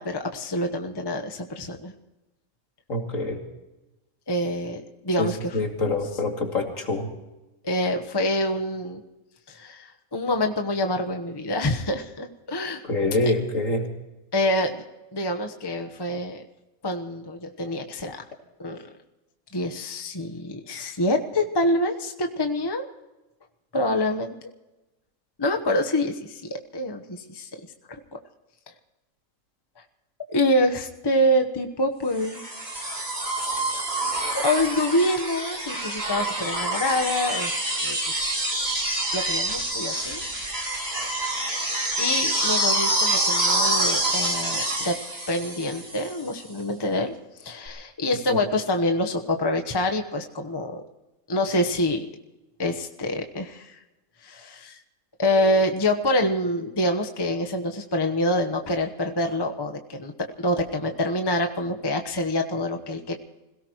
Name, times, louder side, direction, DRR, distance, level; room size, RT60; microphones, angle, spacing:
voice 1, 0.0-1.9 4.3-5.6 7.6-9.0 9.5-12.8 14.3-14.8 15.1-16.4 16.8-18.2 18.6-18.8 19.5-22.9 23.7-24.3 25.4-27.5 27.9-28.2 30.3-32.6 34.3-38.4 39.1-40.2 42.0-45.0 45.3-47.1 47.4-50.8 51.3-52.1 52.6-53.8 54.2-54.8 55.2-60.1 60.4-63.2, left 1 dB, 20° left, 4 dB, 1.0 m, -26 dB
voice 2, 2.9-3.4 5.2-7.1 12.8-13.9 48.3-48.4, left 2 dB, 60° left, 1 dB, 2.9 m, -25 dB
sound 1, 32.2-46.2 47.7-47.8, right 1 dB, 45° right, 3.9 m, -26 dB
26.0 x 17.5 x 3.1 m, 1.0 s
omnidirectional pair, 1.5 m